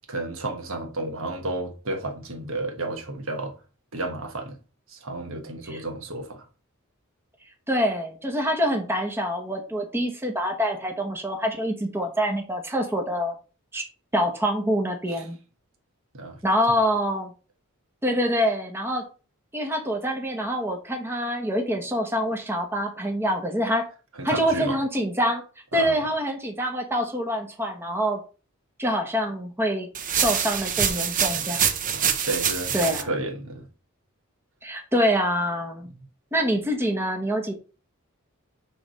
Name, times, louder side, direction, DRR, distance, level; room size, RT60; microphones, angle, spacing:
voice 1, 0.1-3.5 3.9-4.6 4.9-6.4 16.1-16.4 24.2-24.8 25.7-26.1 31.4-31.5 31.9-33.7, right 2 dB, 65° right, 1.4 m, -32 dB
voice 2, 7.7-13.3 13.7-13.8 14.1-15.4 16.4-17.3 18.0-19.0 19.5-23.8 24.2-25.4 25.7-28.2 28.8-29.9 30.1-31.6 32.7-33.1 34.6-35.9 36.3-37.5, equal, 10° right, 1.1 m, -25 dB
sound 1, 30.0-33.0, right 8 dB, 40° right, 0.8 m, -25 dB
6.9 x 3.4 x 5.1 m
head